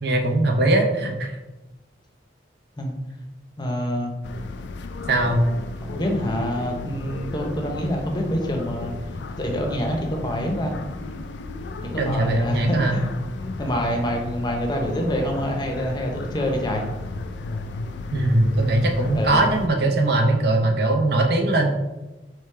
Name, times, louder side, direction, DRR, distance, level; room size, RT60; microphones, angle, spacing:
voice 1, 0.0-1.4 5.1-5.4 12.0-13.0 18.1-21.7, right 2 dB, 60° right, 3 dB, 0.7 m, -20 dB
voice 2, 3.6-4.1 5.9-8.9 9.4-10.7 11.8-13.1 13.6-16.9 19.1-19.5, equal, 25° left, 2 dB, 0.7 m, -26 dB
sound 1, 4.2-19.7, left 3 dB, 75° left, 0.4 m, -34 dB
4.7 x 3.5 x 3.2 m, 1.0 s
head